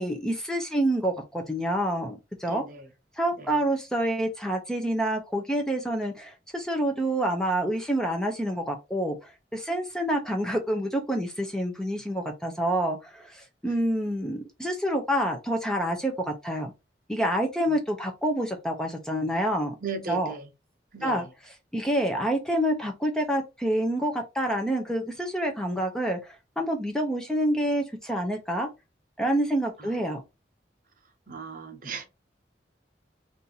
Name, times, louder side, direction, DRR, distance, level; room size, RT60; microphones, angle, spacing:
voice 1, 0.0-2.6 3.2-16.7 17.1-19.7 20.1-20.3 21.0-21.2 21.7-28.7 29.2-30.2, right 1 dB, 5° left, 0.5 m, -27 dB
voice 2, 2.4-2.9 3.3-3.6 13.6-13.7 17.7-17.8 19.8-20.5 20.9-21.3 29.8-29.9 31.3-32.0, right 5 dB, 50° right, 0.8 m, -37 dB
2.8 x 2.5 x 3.8 m
head